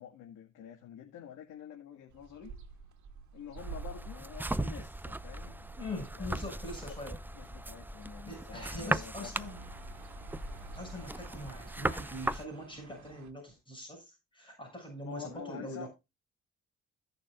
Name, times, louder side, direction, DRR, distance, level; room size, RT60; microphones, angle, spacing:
voice 1, 0.0-2.5 3.3-5.7 6.2-6.7 7.4-9.3 15.1-15.9, left 8 dB, 90° left, 2.1 m, -48 dB
sound 1, 2.1-13.3, right 5 dB, 65° right, 2.1 m, -51 dB
sound 2, 3.6-12.4, right 2 dB, 5° right, 0.4 m, -38 dB
voice 2, 5.8-7.2 8.3-9.6 10.7-15.9, left 1 dB, 15° left, 7.0 m, -43 dB
17.0 x 6.7 x 2.4 m
cardioid pair, 90°, 30 cm